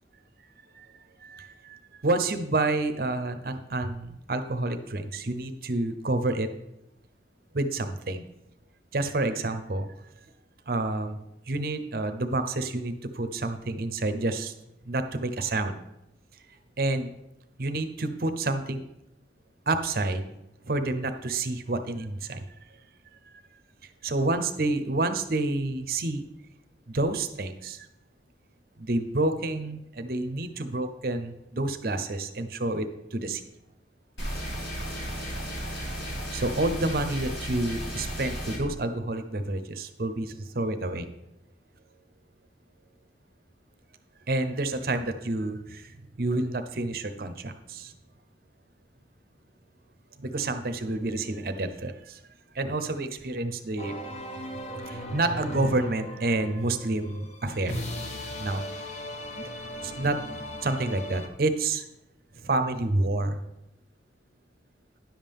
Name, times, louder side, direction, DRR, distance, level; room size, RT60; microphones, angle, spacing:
voice 1, 1.2-6.5 7.5-8.3 8.9-9.9 10.7-11.2 11.5-14.5 14.8-15.8 16.8-17.1 17.6-18.8 19.7-20.2 20.7-22.4 24.0-26.2 26.9-27.9 28.8-33.4 35.8-35.9 36.3-41.1 44.3-47.9 50.2-52.2 52.5-54.0 54.8-57.8 58.4-58.6 59.4-59.5 59.8-60.2 60.6-61.9 62.4-63.4, right 2 dB, 55° right, 9 dB, 0.7 m, -29 dB
sound 1, 34.2-38.6, equal, 90° left, 3.9 m, -34 dB
sound 2, 53.8-61.3, left 1 dB, 40° left, 0.9 m, -37 dB
10.5 x 7.3 x 3.6 m, 0.87 s
head